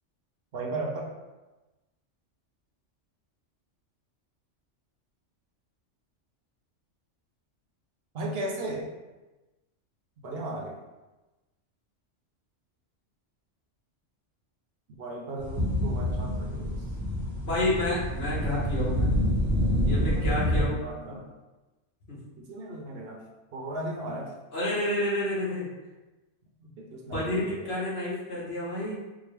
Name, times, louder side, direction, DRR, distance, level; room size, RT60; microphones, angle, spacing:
voice 1, 0.5-1.1 8.1-8.9 10.2-10.8 15.0-16.8 19.9-21.3 22.4-23.2 23.5-24.3 26.6-27.7, right 2 dB, 60° right, -1 dB, 0.8 m, -36 dB
sound 1, 15.4-20.6, equal, ahead, 1.0 m, -27 dB
voice 2, 17.4-19.1 19.8-20.8 22.1-22.2 24.5-25.7 27.1-28.9, left 1 dB, 55° left, -7 dB, 1.6 m, -29 dB
4.6 x 2.2 x 3.3 m, 1.1 s
omnidirectional pair, 1.3 m